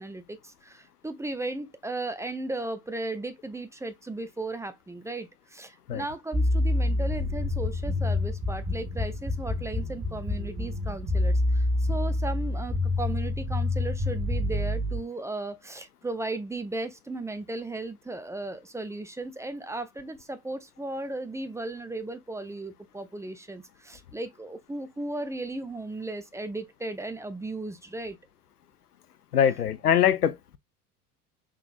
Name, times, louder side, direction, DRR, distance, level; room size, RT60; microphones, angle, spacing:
voice 1, 0.0-28.2, right 2 dB, 5° right, 0.5 m, -36 dB
sound 1, 6.3-15.0, left 2 dB, 25° right, 1.6 m, -27 dB
voice 2, 29.3-30.6, left 9 dB, 85° left, 0.6 m, -23 dB
5.8 x 3.7 x 2.5 m
figure-of-eight pair, 75°, 45 cm